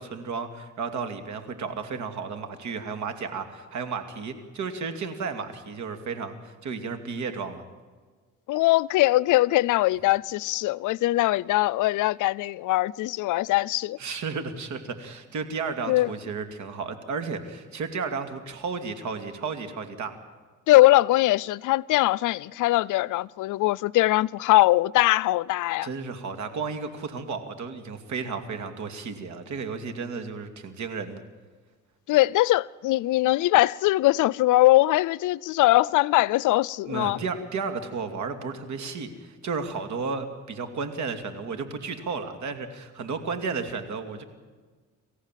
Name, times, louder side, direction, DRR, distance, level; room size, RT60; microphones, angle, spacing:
voice 1, 0.0-7.6 14.0-20.2 25.8-31.2 36.9-44.2, right 5 dB, 70° right, 2.7 m, -33 dB
voice 2, 8.5-14.0 15.9-16.1 20.7-25.9 32.1-37.2, left 17 dB, 80° left, 0.5 m, -21 dB
28.5 x 14.5 x 7.6 m
cardioid pair, 90°, 30 cm